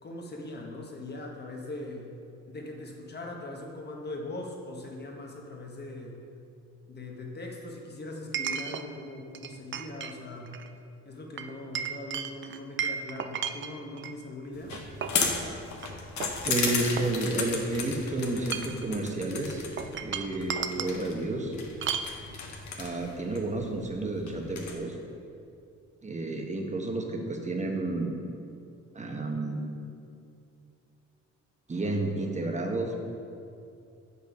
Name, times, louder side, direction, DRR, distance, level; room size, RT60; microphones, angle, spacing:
voice 1, 0.0-2.1 2.5-6.2 6.9-10.6 11.0-14.8, left 2 dB, 35° left, 0 dB, 1.3 m, -40 dB
Chink clink, 4.9-5.0 8.3-8.9 9.3-10.1 10.5-10.7 11.4-14.2 14.7-15.3 15.8-15.9 16.2-17.6 18.3-18.9 19.8-21.0 21.8-22.1, right 7 dB, 40° right, 0.4 m, -34 dB
sound 1, 14.5-24.7, left 5 dB, 65° left, 1.1 m, -35 dB
voice 2, 16.4-19.6 20.0-21.5 22.8-24.9 26.0-28.2 28.9-29.7 31.7-33.0, right 2 dB, 25° right, 2 dB, 1.0 m, -31 dB
6.6 x 5.4 x 5.2 m, 2.5 s
cardioid pair, 90°, 30 cm